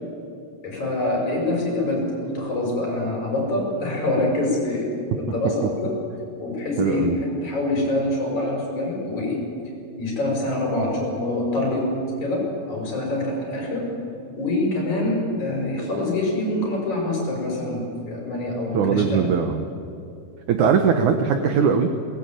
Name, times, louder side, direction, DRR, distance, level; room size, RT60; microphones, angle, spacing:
voice 1, 0.6-4.9 5.2-5.9 6.4-9.4 10.0-11.9 12.2-13.9 14.4-19.3 20.6-20.7, left 2 dB, 45° left, -1 dB, 7.0 m, -25 dB
voice 2, 6.8-7.2 18.7-19.6 20.5-21.9, right 7 dB, 70° right, 7 dB, 1.9 m, -20 dB
22.0 x 18.5 x 9.1 m, 2.6 s
omnidirectional pair, 4.8 m